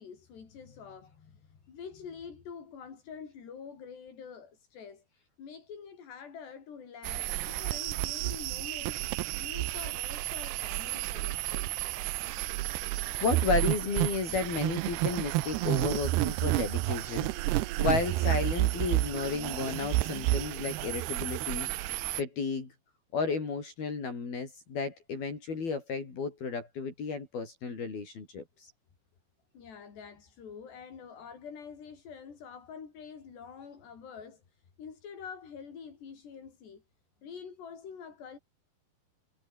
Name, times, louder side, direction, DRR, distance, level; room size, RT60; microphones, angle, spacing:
voice 1, 0.0-5.0 5.4-11.8 29.5-36.8 37.2-38.4, left 6 dB, 85° left, 7.0 m, -46 dB
sound 1, 7.0-22.2, right 18 dB, 80° right, 3.0 m, -31 dB
voice 2, 12.8-21.7 22.2-22.7 23.1-28.7, left 4 dB, 65° left, 8.0 m, -33 dB
omnidirectional pair, 4.7 m